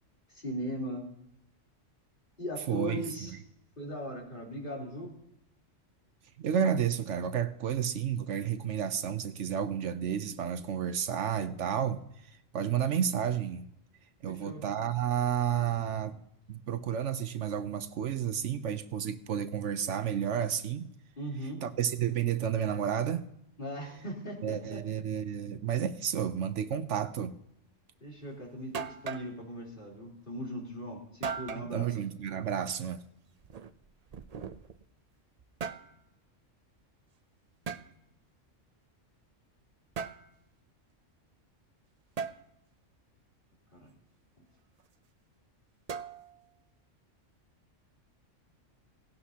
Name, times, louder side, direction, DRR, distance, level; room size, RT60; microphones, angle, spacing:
voice 1, 0.3-1.0 2.4-3.3 3.8-5.1 14.3-14.6 21.2-21.6 23.6-25.0 28.0-31.9 43.7-43.9, equal, 45° left, 3.7 m, -39 dB
voice 2, 2.7-3.1 6.4-13.7 14.2-16.2 16.5-20.9 21.6-23.2 24.4-27.3 31.7-33.0, right 8 dB, 70° right, 1.0 m, -31 dB
sound 1, 28.2-28.3 28.7-29.3 31.2-31.7 33.4-34.8 35.4-35.9 37.7-37.9 40.0-40.3 42.2-42.4 45.9-46.4, right 6 dB, 45° right, 0.5 m, -38 dB
17.5 x 17.0 x 2.8 m
omnidirectional pair, 1.3 m